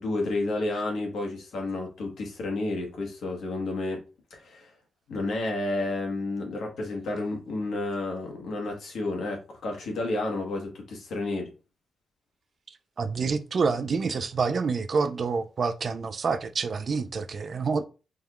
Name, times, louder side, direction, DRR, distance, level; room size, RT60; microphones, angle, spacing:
voice 1, 0.0-4.0 4.3-4.7 5.1-11.5, left 2 dB, 80° left, 1.3 m, -31 dB
voice 2, 13.0-17.8, right 5 dB, 40° right, 0.3 m, -27 dB
4.3 x 3.5 x 2.4 m
wide cardioid pair, 175°, 0 cm